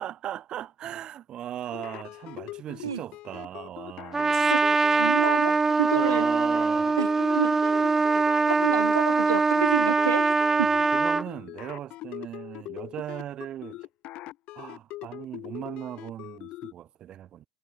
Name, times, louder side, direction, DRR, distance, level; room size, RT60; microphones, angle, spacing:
voice 1, 0.0-4.4 5.9-7.0 10.6-13.9 14.6-17.5, right 11 dB, 45° right, 7.2 m, -38 dB
sound 1, 1.7-16.7, left 17 dB, 50° left, 1.5 m, -41 dB
Trumpet, 4.1-11.3, right 4 dB, 20° right, 1.1 m, -23 dB
voice 2, 4.9-6.3 7.0-7.7 8.6-10.7, right 8 dB, 80° right, 1.2 m, -30 dB
figure-of-eight pair, 70°, 2 cm